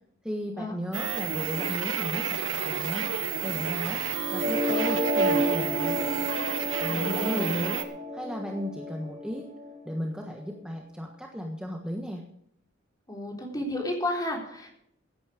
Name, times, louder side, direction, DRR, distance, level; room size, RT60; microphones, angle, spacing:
voice 1, 0.2-3.1 3.4-4.0 4.3-6.0 6.8-7.8 8.1-9.5 9.8-12.2, equal, 5° right, 1 dB, 1.4 m, -35 dB
sound 1, 0.9-7.8, right 7 dB, 75° right, 1.4 m, -31 dB
sound 2, 4.1-10.1, equal, 35° right, 1.8 m, -30 dB
voice 2, 6.9-7.6 13.1-14.7, left 1 dB, 20° left, 0 dB, 3.7 m, -32 dB
16.5 x 9.7 x 5.1 m, 0.71 s
head